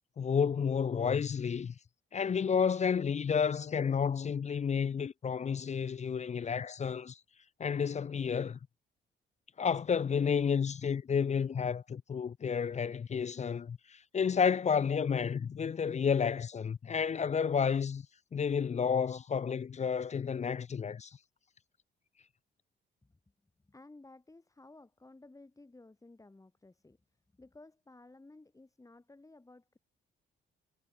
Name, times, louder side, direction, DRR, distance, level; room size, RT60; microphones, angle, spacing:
voice 1, 0.2-1.7 2.1-7.2 7.6-8.6 9.6-18.1 18.3-21.2, left 6 dB, 35° left, 0.7 m, -31 dB
voice 2, 23.6-27.0 27.3-29.8, left 2 dB, 15° left, 4.4 m, -56 dB
cardioid pair, 90°, 20 cm